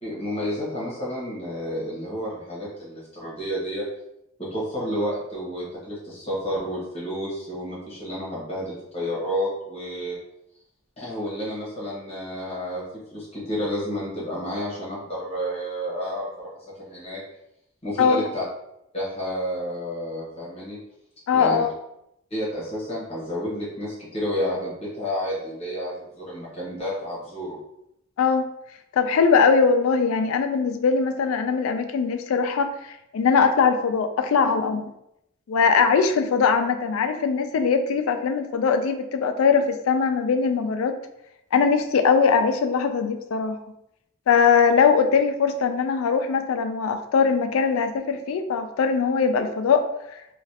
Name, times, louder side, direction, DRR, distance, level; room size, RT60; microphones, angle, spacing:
voice 1, 0.0-3.9 4.4-10.2 11.0-12.8 13.1-16.5 16.8-17.2 17.8-18.4 18.9-20.8 21.3-21.6 22.3-27.6, equal, 30° left, -7 dB, 1.2 m, -30 dB
voice 2, 21.3-21.7 28.2-28.5 28.9-34.9 35.5-41.0 41.5-43.6 44.3-49.9, left 5 dB, 75° left, 7 dB, 0.3 m, -21 dB
3.1 x 2.3 x 2.8 m, 0.81 s
head